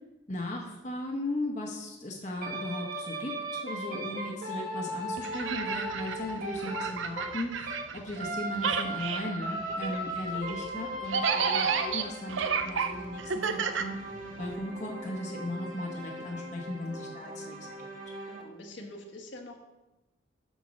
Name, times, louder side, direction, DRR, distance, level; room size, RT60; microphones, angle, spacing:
voice 1, 0.3-14.0 14.4-17.7, left 1 dB, 40° left, 0 dB, 1.1 m, -37 dB
sound 1, 2.4-7.9 8.2-18.4, right 1 dB, 45° right, 1.3 m, -38 dB
voice 2, 3.6-4.0 14.2-14.4 18.2-19.6, left 1 dB, 70° left, 1 dB, 1.5 m, -46 dB
sound 2, 5.2-8.3 8.5-14.5, right 6 dB, 85° right, 0.7 m, -32 dB
10.5 x 4.6 x 6.3 m, 1.0 s
head